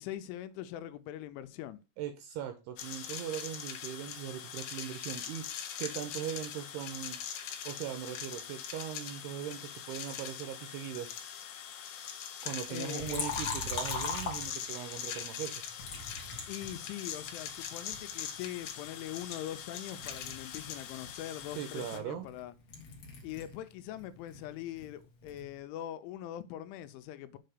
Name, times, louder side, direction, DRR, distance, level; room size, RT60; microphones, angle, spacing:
voice 1, 0.0-1.8 12.7-13.3 16.5-22.5 23.2-27.4, left 12 dB, 90° left, 3.1 m, -42 dB
voice 2, 2.0-7.2 7.7-11.1 12.4-15.6 21.6-22.3, right 10 dB, 85° right, 2.4 m, -40 dB
sound 1, 2.8-22.0, left 8 dB, 70° left, 2.3 m, -42 dB
Liquid, 13.0-15.0 15.8-17.3 17.9-19.7 19.9-23.6 23.9-25.5, left 4 dB, 50° left, 2.0 m, -41 dB
7.8 x 4.2 x 6.6 m
omnidirectional pair, 5.4 m